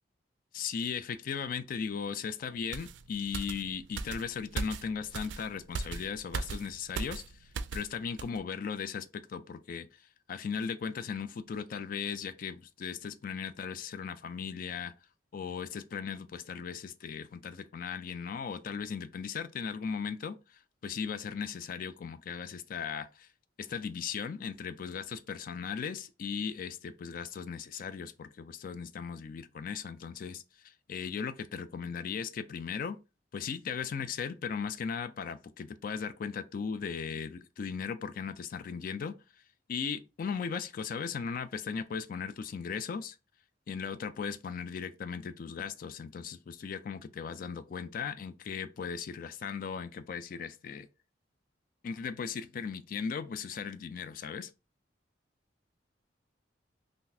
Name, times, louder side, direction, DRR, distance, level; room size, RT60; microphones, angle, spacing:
voice 1, 0.5-9.9 10.3-14.9 15.3-23.3 23.6-33.0 33.3-39.2 39.7-43.2 43.7-50.9 51.8-54.5, left 6 dB, 50° left, 0.3 m, -37 dB
sound 1, 2.7-7.9 8.2-8.4, right 4 dB, 75° right, 0.4 m, -39 dB
3.8 x 2.5 x 2.6 m
head